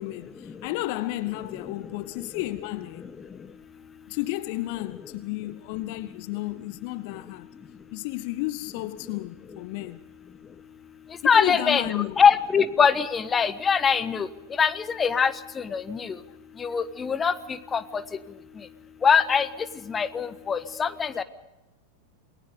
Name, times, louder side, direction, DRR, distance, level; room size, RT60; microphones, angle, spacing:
voice 1, 0.0-3.1 4.1-7.5 7.9-10.0 11.3-12.2, left 17 dB, 45° left, 0.8 m, -32 dB
voice 2, 11.2-14.3 14.6-16.2 16.6-17.3 17.7-18.0 19.0-19.5 19.9-21.2, left 6 dB, 20° left, 1.1 m, -22 dB
28.0 x 20.0 x 5.2 m
figure-of-eight pair, 90°, 0 cm